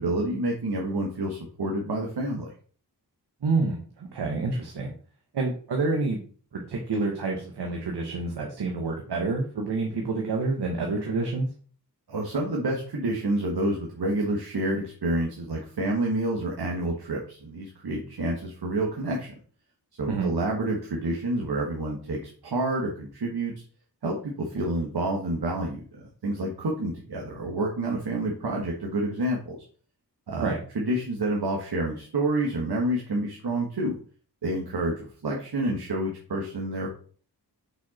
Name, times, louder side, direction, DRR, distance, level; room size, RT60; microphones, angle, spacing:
voice 1, 0.0-2.5 12.1-19.3 20.0-23.5 24.0-29.6 30.3-34.0 34.4-36.9, right 1 dB, 75° right, -1 dB, 1.7 m, -28 dB
voice 2, 3.4-4.9 5.3-6.2 6.5-11.5 20.1-20.3 30.4-30.6, right 3 dB, 90° right, 1 dB, 1.4 m, -28 dB
6.1 x 6.0 x 4.3 m, 0.43 s
wide cardioid pair, 80°, 39 cm